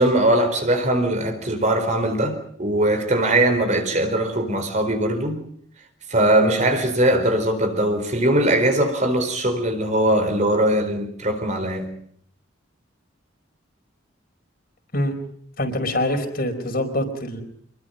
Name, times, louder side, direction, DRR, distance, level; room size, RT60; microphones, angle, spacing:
voice 1, 0.0-5.4 6.1-11.9, right 1 dB, 35° right, 4.3 m, -20 dB
voice 2, 15.6-17.4, left 1 dB, 50° left, 4.8 m, -24 dB
26.0 x 22.5 x 5.4 m
head